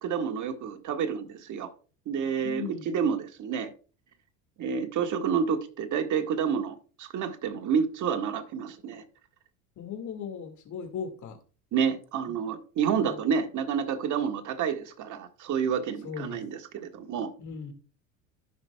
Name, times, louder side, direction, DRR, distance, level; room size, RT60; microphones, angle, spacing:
voice 1, 0.0-1.7 2.1-3.7 4.6-9.0 11.7-17.3, right 7 dB, 45° right, 1.7 m, -29 dB
voice 2, 2.4-2.9 9.8-11.4 13.0-13.2 16.0-16.4 17.4-17.7, left 6 dB, 45° left, 2.2 m, -37 dB
15.0 x 5.9 x 2.3 m
supercardioid pair, 95°, 42 cm